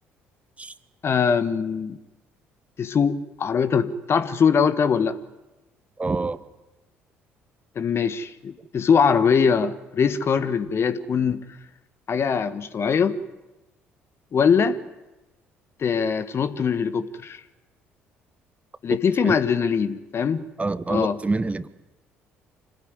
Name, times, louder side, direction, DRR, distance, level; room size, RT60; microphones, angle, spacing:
voice 1, 1.0-2.0 2.8-5.2 7.7-11.5 12.1-13.2 14.3-14.8 15.8-17.4 18.8-20.5 20.9-21.2, left 6 dB, 40° left, 13 dB, 1.5 m, -22 dB
voice 2, 6.0-6.4 19.2-19.4 20.6-21.7, right 3 dB, 20° right, 14 dB, 1.4 m, -26 dB
26.5 x 18.5 x 10.0 m, 1.0 s
figure-of-eight pair, 50°, 6 cm